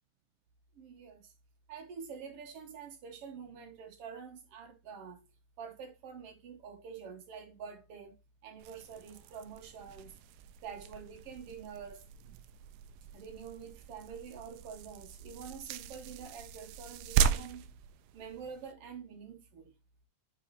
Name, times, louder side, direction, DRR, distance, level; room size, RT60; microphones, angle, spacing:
voice 1, 0.8-1.3 1.7-5.2 5.6-8.2 8.4-10.1 10.6-12.0 13.1-17.7 18.1-19.7, right 6 dB, 60° right, 1.7 m, -47 dB
sound 1, 8.6-18.7, right 8 dB, 85° right, 2.1 m, -37 dB
6.2 x 5.1 x 4.1 m
omnidirectional pair, 3.6 m